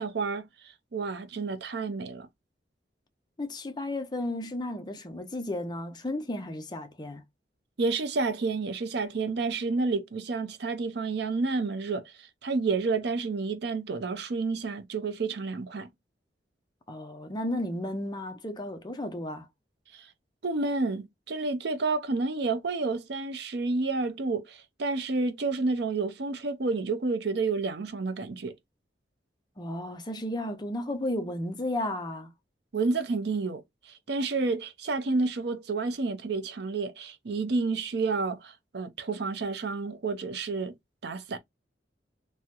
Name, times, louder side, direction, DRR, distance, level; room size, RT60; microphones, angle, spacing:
voice 1, 0.0-2.3 7.8-15.9 19.9-20.1 20.4-28.5 32.7-40.7 41.0-41.4, right 3 dB, 65° right, 0.6 m, -30 dB
voice 2, 3.4-7.2 16.9-19.5 29.6-32.3, left 1 dB, 25° left, 0.6 m, -33 dB
3.5 x 2.1 x 2.8 m
head